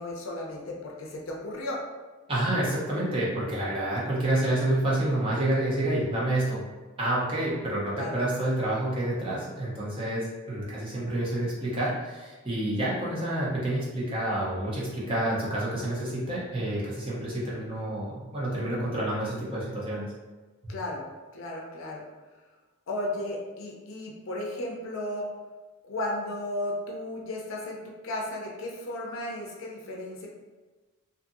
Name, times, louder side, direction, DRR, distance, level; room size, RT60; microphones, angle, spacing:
voice 1, 0.0-1.8 7.9-8.2 20.7-21.0 21.3-22.0 22.9-25.3 25.9-30.3, left 1 dB, 75° left, -2 dB, 0.5 m, -34 dB
voice 2, 2.3-6.6 7.0-20.1 20.6-20.7, right 1 dB, 25° right, -7 dB, 0.7 m, -28 dB
2.5 x 2.5 x 2.6 m, 1.3 s
head